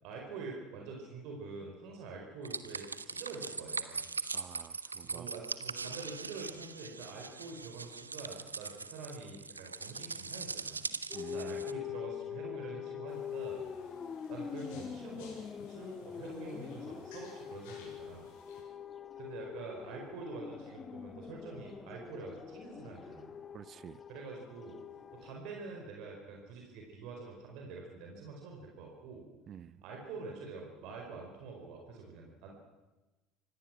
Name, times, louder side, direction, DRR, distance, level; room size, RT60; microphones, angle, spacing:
voice 1, 0.0-4.0 5.0-10.8 11.3-13.6 14.3-18.3 19.2-23.3 24.1-24.8 25.1-29.3 29.8-32.5, right 4 dB, 60° right, 0 dB, 4.7 m, -46 dB
sound 1, 2.4-11.7, right 4 dB, 90° right, 0.7 m, -41 dB
voice 2, 4.3-5.3 11.1-11.6 23.5-24.0 29.5-29.8, right 9 dB, 40° right, 19 dB, 0.7 m, -49 dB
sound 2, 11.1-25.4, left 8 dB, 30° left, 0.9 m, -44 dB
sound 3, 13.1-18.6, left 4 dB, 65° left, 7.2 m, -58 dB
25.5 x 17.5 x 6.2 m, 1.1 s
figure-of-eight pair, 65°, 0 cm